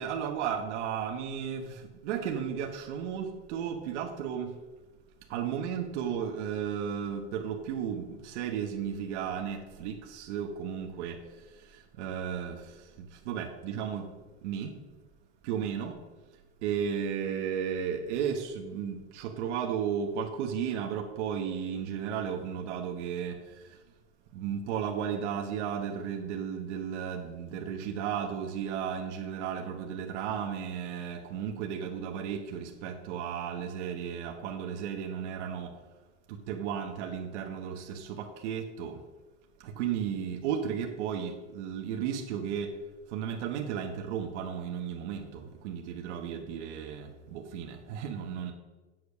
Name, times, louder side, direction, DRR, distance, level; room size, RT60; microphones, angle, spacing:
voice 1, 0.0-4.5 5.3-11.2 12.0-12.6 13.0-14.1 14.4-14.7 15.4-15.9 16.6-23.4 24.3-35.7 36.3-39.0 39.6-42.7 43.1-48.5, right 8 dB, 75° right, 2 dB, 1.2 m, -34 dB
7.8 x 6.7 x 6.0 m, 1.2 s
supercardioid pair, 150°, 35 cm